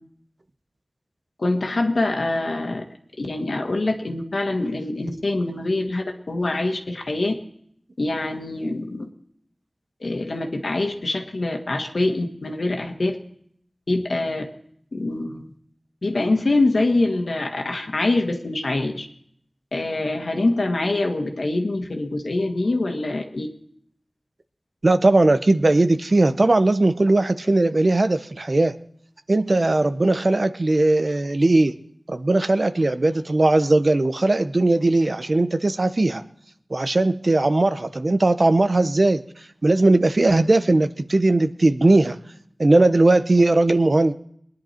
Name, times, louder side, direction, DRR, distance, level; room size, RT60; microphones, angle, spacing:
voice 1, 1.4-2.8 3.2-7.3 8.0-9.1 10.0-13.2 13.9-14.5 14.9-15.4 16.0-19.1 19.7-23.5, left 2 dB, 80° left, 4 dB, 1.8 m, -24 dB
voice 2, 24.8-28.7 29.3-31.7 32.1-36.2 36.7-39.2 39.6-42.2 42.6-44.1, right 2 dB, 60° right, 11 dB, 0.8 m, -18 dB
21.0 x 10.5 x 4.4 m, 0.67 s
wide cardioid pair, 45°, 0 cm